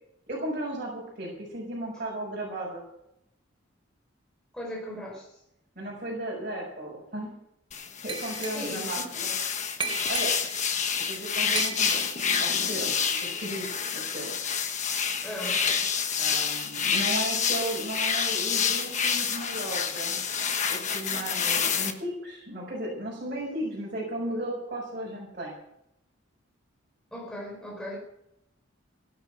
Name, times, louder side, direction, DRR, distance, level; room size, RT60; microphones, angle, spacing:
voice 1, 0.3-2.8 5.8-7.3 8.0-9.3 10.1-10.3 11.0-12.0 12.4-13.0 13.4-14.3 16.2-20.4 20.7-25.5, right 1 dB, 45° right, -5 dB, 5.8 m, -35 dB
voice 2, 4.5-5.3 8.5-9.3 15.2-15.9 27.1-28.0, equal, 5° left, -3 dB, 4.9 m, -38 dB
sound 1, 7.7-21.9, left 6 dB, 35° left, 1.3 m, -28 dB
Glass, 8.1-8.9 9.8-10.7 11.5-12.4, right 5 dB, 25° right, 0.9 m, -35 dB
17.5 x 11.5 x 6.5 m, 0.81 s
head